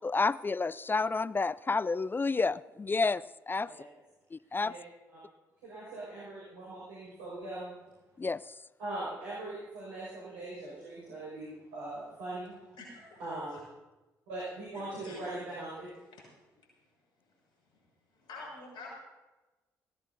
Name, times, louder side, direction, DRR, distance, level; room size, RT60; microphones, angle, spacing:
voice 1, 0.0-3.7 4.3-4.7 8.2-8.4, left 4 dB, 25° left, 20 dB, 0.3 m, -30 dB
voice 2, 5.6-7.7 8.8-12.5 13.2-13.6 14.3-15.9, right 2 dB, 75° right, -7 dB, 6.0 m, -40 dB
voice 3, 12.8-13.2 14.7-15.3 16.1-16.3 18.1-18.9, left 2 dB, 60° left, -2 dB, 6.7 m, -46 dB
21.0 x 17.0 x 2.8 m, 1.1 s
figure-of-eight pair, 45°, 9 cm